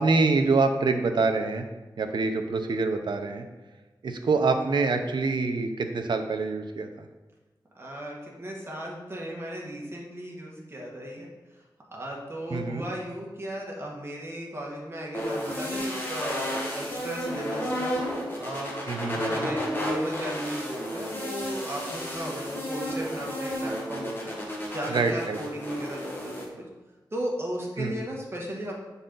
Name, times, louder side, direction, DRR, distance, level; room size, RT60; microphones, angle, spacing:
voice 1, 0.0-1.7 2.0-3.4 4.0-7.1 12.5-12.8 18.9-19.5 24.9-25.4 27.8-28.0, right 3 dB, 75° right, 6 dB, 0.7 m, -25 dB
voice 2, 7.7-11.3 11.9-17.9 18.4-18.7 19.0-26.6 27.1-28.7, equal, 30° right, -2 dB, 1.6 m, -36 dB
sound 1, 15.1-26.4, equal, 25° left, 1.6 m, -32 dB
8.9 x 4.1 x 3.9 m, 1.2 s
wide cardioid pair, 100°, 8 cm